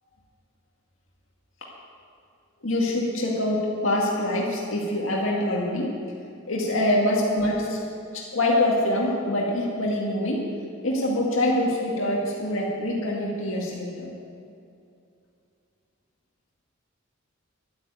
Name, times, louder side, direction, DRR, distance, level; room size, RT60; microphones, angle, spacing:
voice 1, 2.6-5.9 6.5-7.8 8.1-10.4 10.8-14.1, left 1 dB, 75° left, -3 dB, 2.1 m, -25 dB
12.5 x 8.7 x 9.3 m, 2.5 s
head